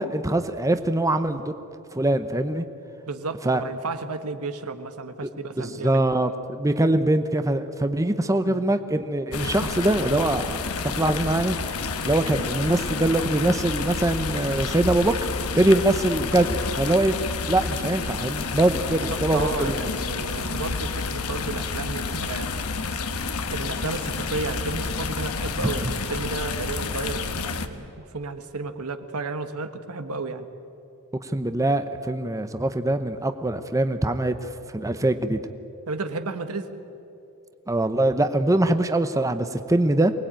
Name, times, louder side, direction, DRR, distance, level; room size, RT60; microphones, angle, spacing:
voice 1, 0.0-1.5 1.9-2.6 3.4-3.6 5.2-5.3 5.6-10.6 10.8-11.6 12.0-15.2 15.5-17.2 17.5-19.8 25.6-25.9 31.2-35.4 37.7-40.1, right 1 dB, 15° right, 9 dB, 0.7 m, -23 dB
voice 2, 3.1-6.0 8.5-8.7 18.8-22.7 23.5-30.5 35.9-36.7, right 3 dB, 80° right, 8 dB, 1.4 m, -33 dB
sound 1, 9.3-27.7, left 4 dB, 70° left, 1.2 m, -29 dB
23.5 x 19.5 x 8.9 m, 2.9 s
head